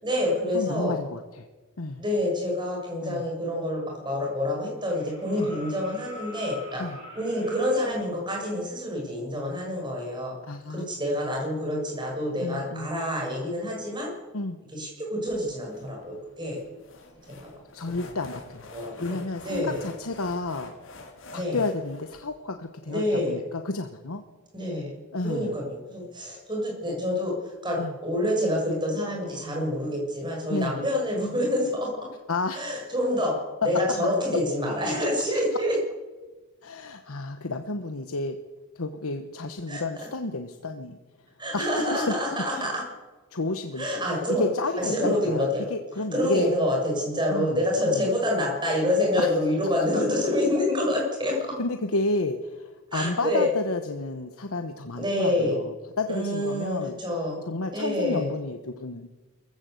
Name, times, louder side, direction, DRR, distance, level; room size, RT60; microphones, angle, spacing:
voice 1, 0.0-0.9 2.0-6.8 7.2-10.3 10.7-14.1 14.7-16.6 17.4-17.5 18.7-19.8 21.3-21.6 22.9-23.4 24.5-24.9 25.2-31.9 32.5-33.4 33.6-35.8 39.7-40.1 41.4-42.8 43.8-44.5 44.8-45.7 46.1-51.4 52.9-53.5 55.0-55.6 56.1-57.4 57.7-58.3, left 1 dB, 20° right, 0 dB, 6.6 m, -27 dB
voice 2, 0.5-1.5 1.8-2.0 3.0-3.2 5.4-5.5 6.8-7.0 10.5-10.9 12.4-12.9 14.3-14.6 17.7-18.7 19.0-20.7 21.3-24.2 25.1-25.5 27.8-27.9 30.5-30.9 32.3-32.6 36.6-38.4 38.7-41.0 41.5-42.1 42.5-42.7 43.3-43.9 44.4-46.5 47.3-48.1 49.2-49.3 51.6-56.9 57.5-59.1, left 2 dB, 80° left, 7 dB, 1.2 m, -31 dB
sound 1, 4.8-8.0 9.8-9.9, left 1 dB, 50° right, 7.5 m, -44 dB
sound 2, 15.3-22.2, left 2 dB, 60° left, 3.5 m, -47 dB
23.5 x 15.5 x 8.0 m, 1.2 s
head